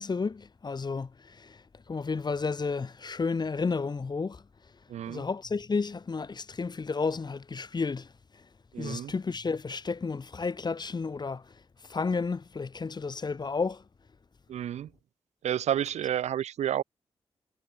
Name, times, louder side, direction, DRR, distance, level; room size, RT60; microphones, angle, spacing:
voice 1, 0.0-4.4 5.1-8.1 8.8-11.4 11.9-13.8, left 4 dB, 40° left, 1.0 m, -32 dB
voice 2, 4.9-5.2 8.7-9.1 14.5-14.9 15.4-16.8, right 10 dB, 85° right, 2.5 m, -30 dB
supercardioid pair, 50°, 11 cm